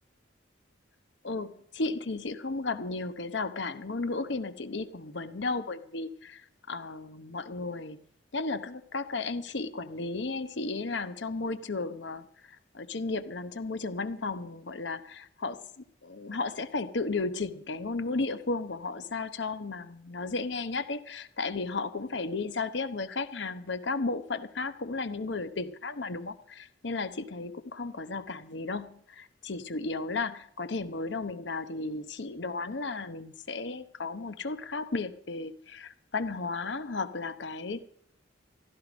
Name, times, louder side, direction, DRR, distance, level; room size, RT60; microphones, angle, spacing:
voice 1, 1.2-8.0 8.3-15.6 16.0-37.9, left 3 dB, 65° left, 11 dB, 0.9 m, -34 dB
15.0 x 12.5 x 5.1 m, 0.67 s
head